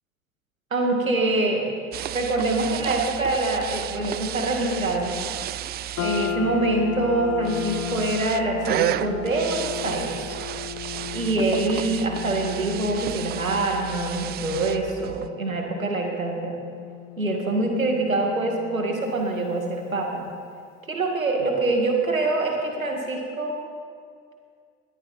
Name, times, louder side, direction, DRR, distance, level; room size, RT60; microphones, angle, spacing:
voice 1, 0.7-1.7 2.1-5.2 6.0-10.4 11.1-16.6 17.2-20.2 20.9-23.6, right 2 dB, 85° right, 2 dB, 2.1 m, -25 dB
sound 1, 1.9-15.3, right 13 dB, 25° right, 0.4 m, -33 dB
sound 2, 6.0-20.4, left 11 dB, 40° left, 1.1 m, -37 dB
20.5 x 14.0 x 4.3 m, 2.2 s
figure-of-eight pair, 70°, 40 cm